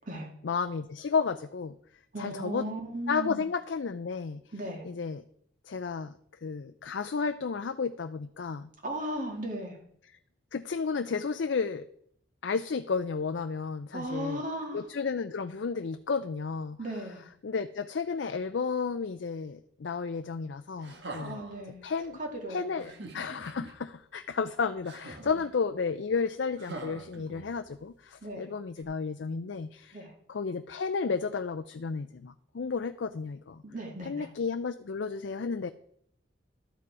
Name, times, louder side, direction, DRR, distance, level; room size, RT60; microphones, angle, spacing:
voice 1, 0.4-1.7 2.2-2.6 3.1-4.4 4.8-5.2 5.7-8.7 10.5-11.8 12.4-14.4 14.7-16.8 17.4-21.4 21.8-22.2 22.5-30.0 30.3-33.6 34.1-35.7, left 5 dB, 65° left, 9 dB, 0.5 m, -32 dB
voice 2, 2.1-3.5 4.5-4.8 8.8-9.8 13.9-14.9 16.8-17.2 21.2-21.9 22.1-22.9 25.2-25.4 28.2-28.5 29.9-30.1 33.6-34.3, right 1 dB, 40° right, 2 dB, 2.2 m, -37 dB
sound 1, 20.8-21.6 22.8-23.7 24.8-25.5 26.6-27.7 28.8-28.9, right 2 dB, 60° right, 1.5 m, -44 dB
12.5 x 7.6 x 4.7 m, 0.68 s
head